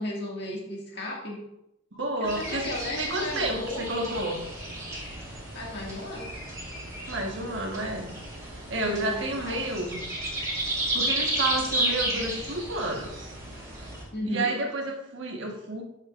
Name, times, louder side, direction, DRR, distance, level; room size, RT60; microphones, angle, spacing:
voice 1, 0.0-1.4 2.2-4.1 5.5-6.3 8.8-9.0 9.5-9.6 14.1-14.5, left 1 dB, 55° left, -2 dB, 2.0 m, -35 dB
voice 2, 1.9-4.4 7.1-8.1 8.4-10.0 10.9-13.3 14.2-15.8, right 2 dB, 65° right, 1 dB, 1.4 m, -30 dB
sound 1, 2.2-14.0, right 1 dB, 15° right, 2.6 m, -33 dB
11.0 x 6.4 x 2.5 m, 0.84 s
head